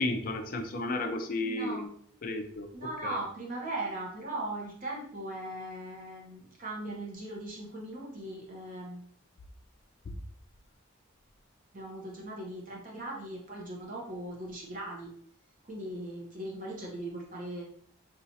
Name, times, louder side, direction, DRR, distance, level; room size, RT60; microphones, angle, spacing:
voice 1, 0.0-1.9 2.2-2.7 3.0-3.2, left 2 dB, 45° left, 6 dB, 0.4 m, -32 dB
voice 2, 1.4-1.9 2.7-9.1 11.7-15.1 15.7-17.6, right 1 dB, 40° right, -2 dB, 0.7 m, -39 dB
4.3 x 2.4 x 2.7 m, 0.63 s
head